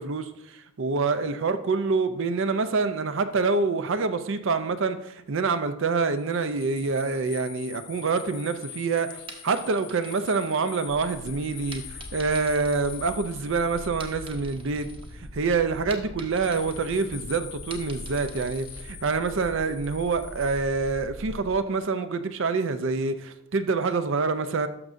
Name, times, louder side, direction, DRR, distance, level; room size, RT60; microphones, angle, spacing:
voice 1, 0.0-14.9 15.2-24.7, right 4 dB, 55° right, 0.5 m, -26 dB
sound 1, 6.2-15.4 16.3-20.6, left 10 dB, 80° left, 0.7 m, -44 dB
sound 2, 9.3-11.1 11.7-13.5 13.8-15.2 15.5-18.9, right 3 dB, 25° right, 0.9 m, -47 dB
sound 3, 10.9-21.5, left 1 dB, 35° left, 0.6 m, -43 dB
12.0 x 6.1 x 2.6 m
head